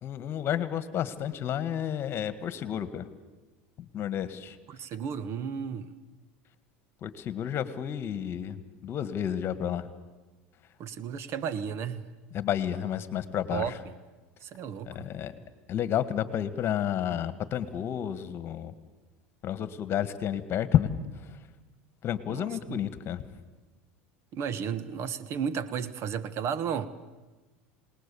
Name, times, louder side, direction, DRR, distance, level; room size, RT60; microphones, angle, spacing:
voice 1, 0.0-3.1 3.8-4.6 7.0-9.9 12.3-13.8 14.9-15.3 15.7-18.7 19.4-21.4 22.0-23.3, left 10 dB, 40° left, 13 dB, 1.7 m, -31 dB
voice 2, 4.7-5.9 10.8-12.0 13.5-13.7 14.4-15.0 22.3-22.8 24.3-26.9, right 7 dB, 50° right, 14 dB, 1.3 m, -33 dB
27.5 x 19.5 x 7.1 m, 1.2 s
hypercardioid pair, 90°, 6 cm